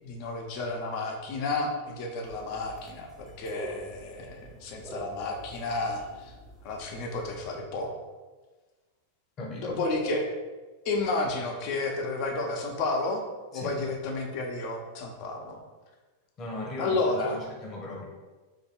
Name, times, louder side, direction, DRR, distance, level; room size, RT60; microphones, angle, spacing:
voice 1, 0.0-6.3 6.6-7.9 9.5-10.3 10.8-13.2 13.5-15.6 16.8-17.4, left 2 dB, 45° left, 2 dB, 0.6 m, -31 dB
sound 1, 2.2-7.6, right 2 dB, 15° right, 0.6 m, -47 dB
voice 2, 9.4-9.8 13.5-13.8 16.4-18.0, left 1 dB, 30° left, -1 dB, 1.0 m, -38 dB
3.0 x 2.6 x 4.4 m, 1.3 s
figure-of-eight pair, 90°, 0 cm